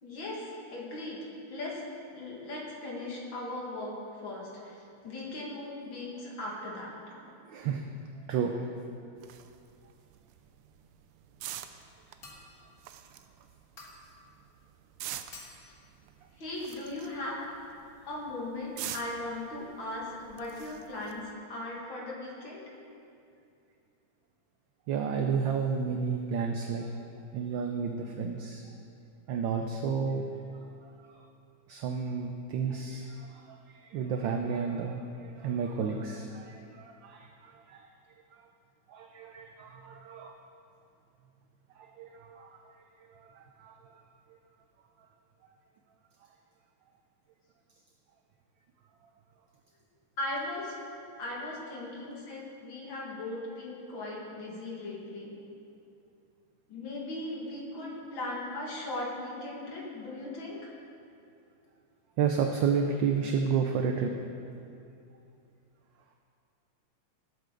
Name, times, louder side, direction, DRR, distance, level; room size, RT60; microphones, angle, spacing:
voice 1, 0.0-1.2 1.5-1.8 2.1-4.8 5.0-6.9 16.4-17.4 18.1-22.6 50.2-50.7 51.2-55.3 56.7-60.7, left 2 dB, 65° left, -4 dB, 2.7 m, -38 dB
voice 2, 7.5-7.8 8.3-8.7 24.9-26.9 27.3-28.6 29.3-30.3 30.8-31.2 31.7-37.9 38.9-40.4 41.8-42.5 43.1-43.3 43.6-44.0 62.2-64.2, right 6 dB, 70° right, 3 dB, 1.3 m, -31 dB
sound 1, 9.2-21.3, right 11 dB, 90° right, 1.5 m, -47 dB
sound 2, 12.2-12.7 13.8-14.2 15.3-15.8, left 2 dB, 45° left, 1.9 m, -49 dB
18.0 x 8.2 x 3.9 m, 2.6 s
omnidirectional pair, 2.3 m